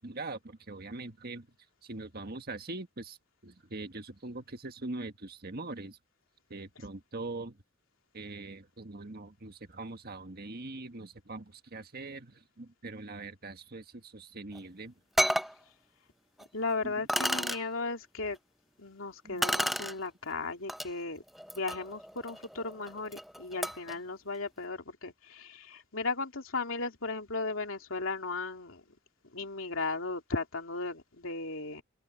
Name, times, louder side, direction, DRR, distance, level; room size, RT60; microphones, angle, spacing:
voice 1, 0.0-1.5 1.8-3.2 3.4-6.0 6.5-7.6 8.1-14.9 16.8-16.9 19.2-19.5, right 2 dB, 50° right, 1.6 m, -42 dB
sound 1, 14.6-14.7 15.2-15.5 16.4-16.5 17.1-17.6 19.4-19.9 20.7-20.9 21.4-23.9, equal, ahead, 0.6 m, -32 dB
voice 2, 16.5-18.4 18.8-21.2 21.5-28.8 29.3-31.8, left 3 dB, 75° left, 2.9 m, -36 dB
open air
head